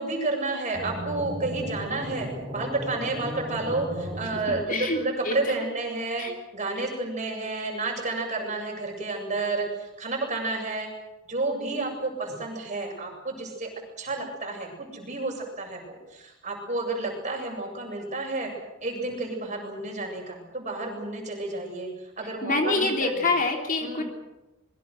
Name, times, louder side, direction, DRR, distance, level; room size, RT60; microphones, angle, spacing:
voice 1, 0.0-6.2 6.5-10.9 11.3-13.7 14.0-18.5 18.8-21.9 22.2-23.3 23.8-24.0, right 2 dB, 35° right, 1 dB, 7.7 m, -31 dB
sound 1, 0.7-5.0, equal, 15° right, 6.3 m, -35 dB
voice 2, 22.4-24.0, left 3 dB, 40° left, 2 dB, 3.5 m, -25 dB
26.5 x 22.5 x 6.5 m, 0.99 s
head